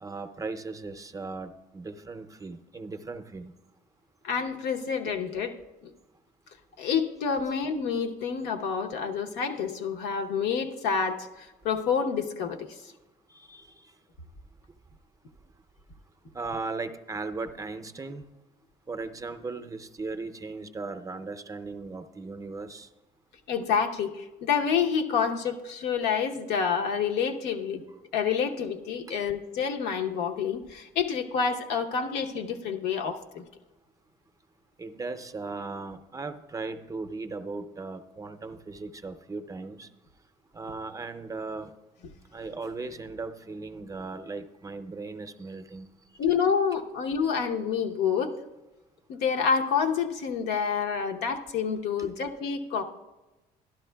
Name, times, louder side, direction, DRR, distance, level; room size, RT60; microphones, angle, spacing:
voice 1, 0.0-3.5 13.3-13.7 16.3-18.3 18.9-22.9 34.8-39.9 40.5-41.7 42.3-45.9 52.0-52.1, right 3 dB, 20° right, 8 dB, 0.5 m, -37 dB
voice 2, 4.2-5.5 5.8-5.9 6.8-12.6 23.5-27.8 28.1-33.4 46.2-48.3 49.1-52.8, left 6 dB, 85° left, 3 dB, 0.9 m, -28 dB
12.0 x 12.0 x 2.3 m, 1.0 s
cardioid pair, 110°, 17 cm